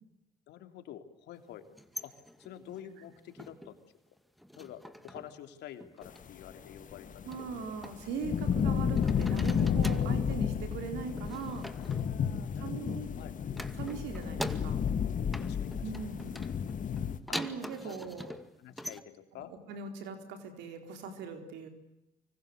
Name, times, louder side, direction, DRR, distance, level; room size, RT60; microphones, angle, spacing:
voice 1, 0.5-1.6 2.0-2.1 2.4-3.8 4.6-7.1 11.7-13.3 15.4-15.9 17.3-17.4 17.8-18.0 18.6-19.5, left 11 dB, 75° left, 8 dB, 3.2 m, -48 dB
sound 1, 1.6-3.8 4.2-5.4 5.7-6.2 7.3-8.7 9.0-10.2 11.1-13.0 13.5-15.0 15.3-19.0, equal, ahead, 2.1 m, -44 dB
sound 2, 6.7-17.2, left 7 dB, 45° left, 1.8 m, -32 dB
voice 2, 7.2-11.7 12.6-13.1 13.8-14.8 15.8-16.3 17.3-18.3 19.4-21.7, right 5 dB, 80° right, 7 dB, 4.3 m, -40 dB
25.0 x 24.5 x 8.1 m, 0.86 s
supercardioid pair, 70°, 18 cm